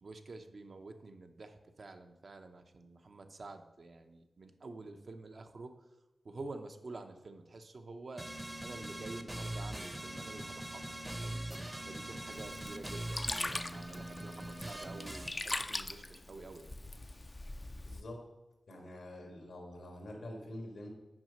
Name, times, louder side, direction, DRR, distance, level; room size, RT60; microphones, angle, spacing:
voice 1, 0.0-5.8 6.2-8.3 8.6-11.4 11.8-16.7, right 3 dB, 60° right, 6 dB, 0.7 m, -49 dB
sound 1, 8.2-15.3, right 1 dB, 15° right, 0.7 m, -42 dB
Sink (filling or washing), 12.3-18.0, left 2 dB, 30° left, 0.4 m, -41 dB
voice 2, 17.8-18.2 18.7-20.9, left 1 dB, 90° left, 2 dB, 1.7 m, -46 dB
6.0 x 4.9 x 5.4 m, 1.0 s
cardioid pair, 60°, 0 cm